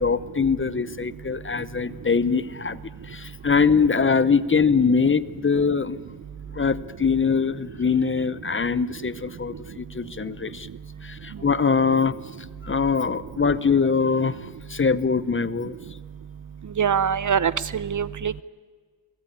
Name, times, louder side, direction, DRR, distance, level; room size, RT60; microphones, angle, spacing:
voice 1, 0.0-6.0 6.5-10.7 11.0-12.2 12.6-14.4 14.7-15.8, left 5 dB, 25° left, 16 dB, 0.8 m, -23 dB
voice 2, 16.8-18.4, right 7 dB, 45° right, 18 dB, 0.7 m, -23 dB
27.5 x 19.5 x 9.6 m, 1.5 s
wide cardioid pair, 130°, 44 cm